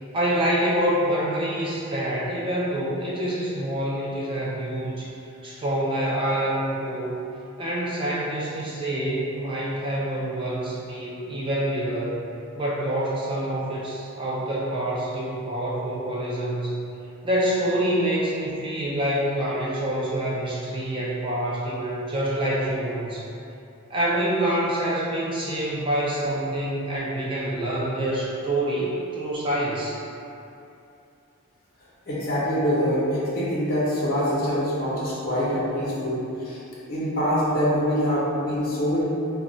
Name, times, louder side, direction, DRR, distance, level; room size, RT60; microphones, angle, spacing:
voice 1, 0.1-5.1 5.4-7.2 7.6-12.2 12.6-16.8 17.2-23.3 23.9-30.0, right 1 dB, 25° right, -6 dB, 0.4 m, -26 dB
voice 2, 32.1-36.6 36.9-39.0, equal, 45° left, -8 dB, 0.6 m, -24 dB
2.3 x 2.1 x 3.8 m, 2.8 s
head